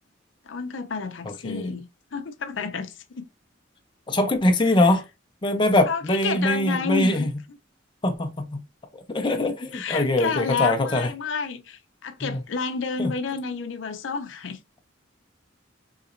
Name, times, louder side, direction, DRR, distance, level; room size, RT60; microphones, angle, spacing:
voice 1, 0.4-3.3 4.6-4.9 5.9-7.6 9.7-14.6, left 5 dB, 75° left, 0.5 m, -30 dB
voice 2, 4.1-5.0 5.4-7.3 8.0-8.6 8.9-11.1 12.2-12.4 13.0-13.1, left 1 dB, 25° left, 0.5 m, -22 dB
3.8 x 2.9 x 2.5 m
head